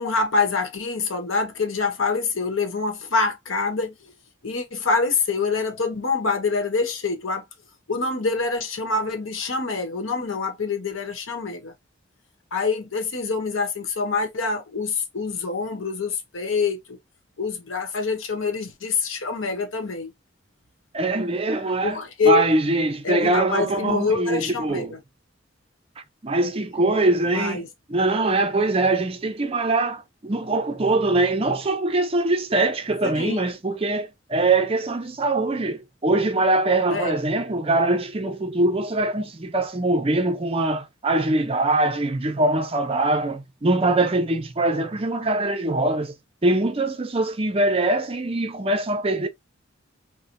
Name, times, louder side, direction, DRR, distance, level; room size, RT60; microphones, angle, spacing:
voice 1, 0.0-3.9 4.4-7.4 7.9-11.7 12.5-17.0 17.4-20.1 21.8-22.5 23.0-25.0 27.2-27.7 33.0-33.4 36.9-37.2, left 4 dB, 85° left, 1.0 m, -25 dB
voice 2, 20.9-24.9 26.2-46.1 46.4-49.3, right 2 dB, 30° right, 0.5 m, -23 dB
4.4 x 2.1 x 2.5 m
head